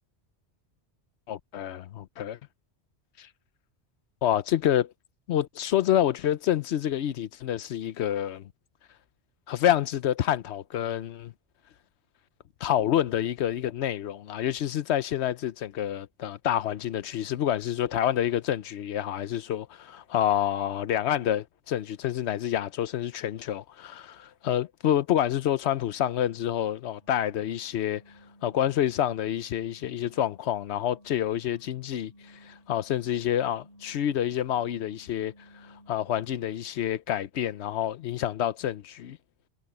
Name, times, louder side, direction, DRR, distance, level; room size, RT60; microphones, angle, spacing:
voice 1, 1.3-2.4 3.2-3.3 4.2-4.9 5.3-8.5 9.5-11.3 12.6-28.0 28.4-39.2, left 11 dB, 80° left, 1.0 m, -28 dB
sound 1, 27.0-36.7, equal, 40° left, 7.9 m, -56 dB
omnidirectional pair, 1.1 m